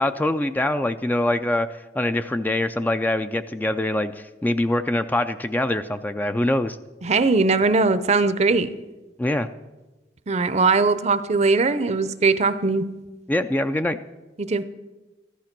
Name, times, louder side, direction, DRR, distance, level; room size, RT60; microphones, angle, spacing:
voice 1, 0.0-6.8 9.2-9.5 13.3-14.0, left 1 dB, 10° left, 9 dB, 0.4 m, -24 dB
voice 2, 7.0-8.7 10.3-12.8 14.4-14.6, right 3 dB, 40° right, 13 dB, 0.7 m, -20 dB
14.0 x 11.5 x 6.0 m, 1.1 s
head